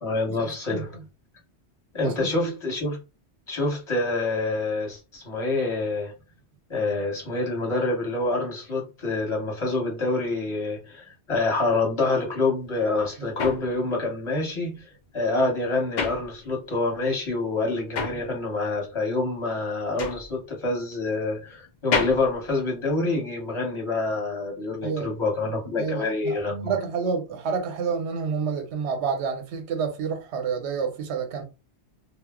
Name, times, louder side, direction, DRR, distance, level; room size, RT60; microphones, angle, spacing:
voice 1, 0.0-0.9 1.9-3.0 3.5-6.1 6.7-26.8, left 3 dB, 25° left, 1.2 m, -27 dB
voice 2, 0.7-1.0 2.0-2.5 13.2-13.4 24.8-25.2 25.8-31.4, right 6 dB, 75° right, 1.0 m, -29 dB
sound 1, 12.6-16.9 17.2-23.4, left 5 dB, 55° left, 0.5 m, -33 dB
2.3 x 2.0 x 3.5 m
omnidirectional pair, 1.1 m